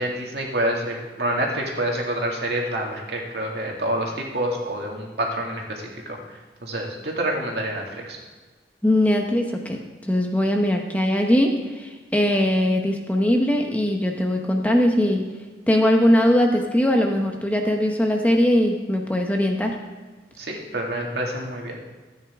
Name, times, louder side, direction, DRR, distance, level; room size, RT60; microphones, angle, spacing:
voice 1, 0.0-6.2 6.6-8.2 20.4-21.8, right 1 dB, 70° right, 0 dB, 2.2 m, -27 dB
voice 2, 8.8-15.2 15.7-19.8, left 1 dB, 10° left, 2 dB, 0.8 m, -20 dB
14.5 x 9.3 x 3.6 m, 1.3 s
head